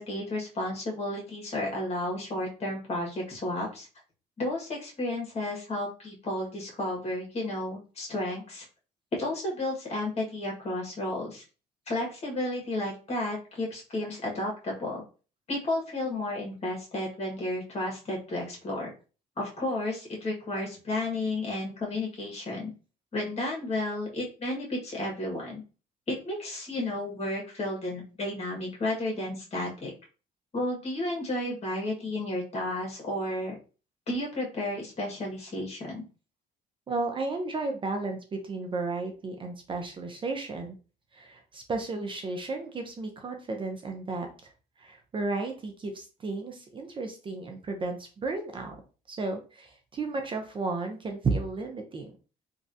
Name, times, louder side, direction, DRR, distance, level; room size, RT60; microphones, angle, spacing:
voice 1, 0.0-3.9 4.4-8.6 9.1-11.4 11.9-15.0 15.5-18.9 19.4-22.7 23.1-25.6 26.1-29.9 30.5-33.5 34.1-36.0, left 1 dB, 40° left, -2 dB, 1.5 m, -32 dB
voice 2, 36.9-40.8 41.1-44.3 44.8-48.8 49.1-52.1, right 3 dB, 30° right, 3 dB, 0.5 m, -33 dB
3.1 x 2.5 x 2.6 m, 0.34 s
cardioid pair, 110°, 17 cm